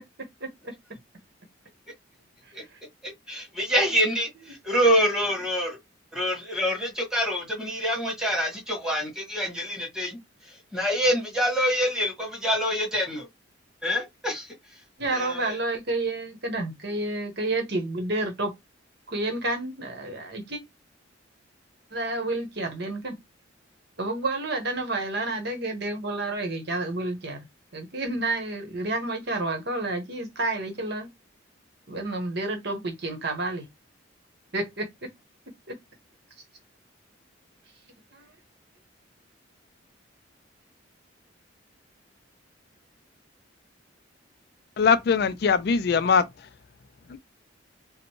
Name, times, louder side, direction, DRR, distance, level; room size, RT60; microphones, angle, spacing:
voice 1, 3.0-5.8 6.1-13.3 13.8-14.8 15.1-15.6, equal, 5° right, 1.7 m, -26 dB
voice 2, 15.0-18.5 19.1-20.6 21.9-23.2 24.0-27.4 27.7-31.1 31.9-33.6 34.5-34.9 35.7-35.8, right 2 dB, 55° right, 1.2 m, -30 dB
voice 3, 44.8-46.2 47.1-47.2, left 5 dB, 50° left, 0.3 m, -21 dB
5.0 x 2.1 x 3.0 m
head